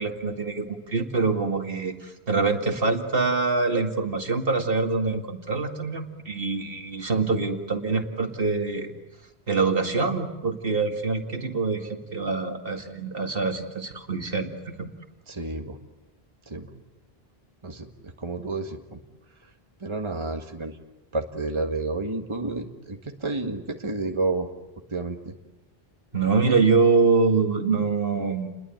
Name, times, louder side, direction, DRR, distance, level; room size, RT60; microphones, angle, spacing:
voice 1, 0.0-8.9 9.5-14.9 26.1-28.5, right 4 dB, 60° right, 5 dB, 2.3 m, -25 dB
voice 2, 15.3-15.8 16.5-16.7 17.6-17.9 18.2-19.0 19.8-20.8 21.1-24.5 24.9-25.3, right 3 dB, 30° right, 4 dB, 1.8 m, -30 dB
30.0 x 21.5 x 9.1 m, 0.98 s
omnidirectional pair, 1.1 m